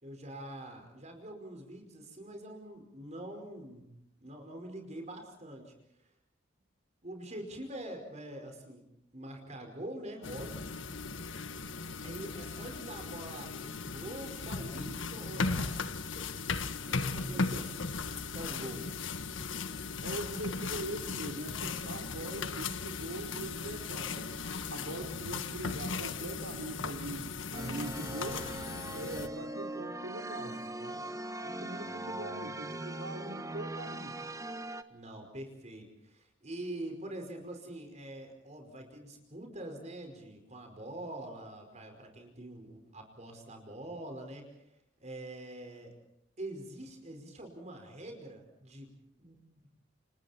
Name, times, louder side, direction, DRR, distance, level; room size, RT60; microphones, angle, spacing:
voice 1, 0.0-3.9 4.2-5.7 6.0-6.1 7.0-8.9 9.1-10.6 12.0-15.8 16.1-16.3 16.7-17.6 18.0-18.9 24.6-25.1 31.9-32.5 34.9-44.7 45.0-45.9 46.4-49.8, right 1 dB, 35° right, 4 dB, 5.1 m, -45 dB
sound 1, 10.2-29.3, left 4 dB, 70° left, 1.5 m, -37 dB
voice 2, 20.0-27.2 27.5-28.4 28.9-31.0 31.4-34.3, right 1 dB, 85° right, 0 dB, 3.9 m, -42 dB
sound 2, 27.5-34.8, right 1 dB, 15° right, 1.3 m, -40 dB
30.0 x 29.0 x 4.4 m, 0.74 s
head